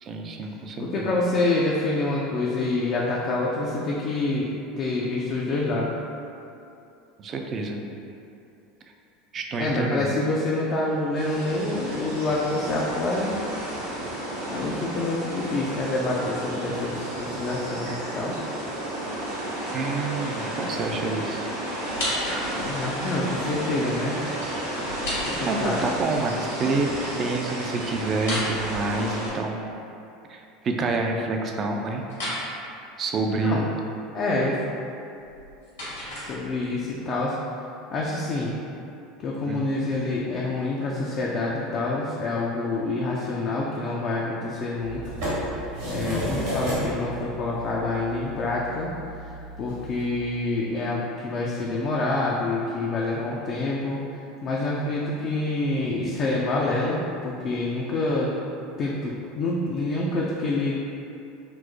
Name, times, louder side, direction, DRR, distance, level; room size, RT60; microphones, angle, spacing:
voice 1, 0.0-1.1 7.2-7.8 9.3-10.1 19.7-21.5 25.5-26.9 27.2-29.7 30.3-32.0 33.0-33.7 39.5-39.6, right 3 dB, 40° right, 2 dB, 0.4 m, -28 dB
voice 2, 0.8-6.0 9.6-13.4 14.4-18.4 22.6-24.2 25.3-25.9 33.4-33.6 34.1-34.6 36.1-37.3 37.9-38.5 39.2-45.0 45.3-48.9 49.6-54.0 54.4-58.3 58.8-60.7, left 2 dB, 45° left, -4 dB, 0.4 m, -27 dB
sound 1, 11.1-29.3, right 1 dB, 85° right, 0.9 m, -32 dB
sound 2, 21.8-22.8 24.8-26.0 28.1-29.5 32.1-32.4 35.2-36.8, left 1 dB, 80° left, 1.5 m, -32 dB
sound 3, 44.8-50.0, equal, 70° right, 1.2 m, -32 dB
4.4 x 2.0 x 2.6 m, 2.7 s
hypercardioid pair, 75°, 0 cm